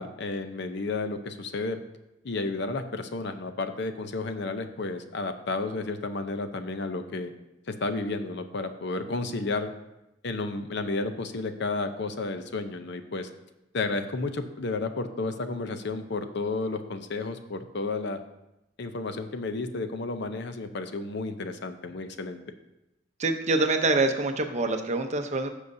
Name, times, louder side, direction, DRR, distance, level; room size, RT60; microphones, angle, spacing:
voice 1, 0.0-1.8 2.2-7.3 7.7-9.7 10.2-13.3 13.7-18.2 18.8-22.4, left 3 dB, 60° left, 8 dB, 0.7 m, -32 dB
voice 2, 23.2-25.5, right 2 dB, 35° right, 6 dB, 0.7 m, -25 dB
15.0 x 6.4 x 2.7 m, 0.90 s
head